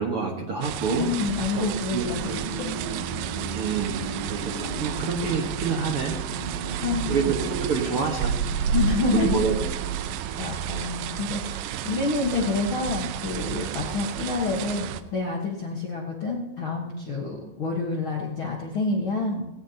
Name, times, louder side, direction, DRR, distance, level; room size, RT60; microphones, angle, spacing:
voice 1, 0.0-1.1 1.6-2.0 3.5-6.2 7.1-8.4 8.6-8.7 9.1-9.5, right 5 dB, 55° right, 0 dB, 1.7 m, -27 dB
sound 1, 0.6-15.0, right 9 dB, 80° right, 2.3 m, -31 dB
voice 2, 0.9-2.7 6.8-7.2 8.7-9.5 10.4-19.4, left 3 dB, 55° left, -1 dB, 1.5 m, -28 dB
sound 2, 2.0-11.0, right 1 dB, 90° left, 8.1 m, -37 dB
18.0 x 17.5 x 2.9 m, 0.91 s
omnidirectional pair, 4.2 m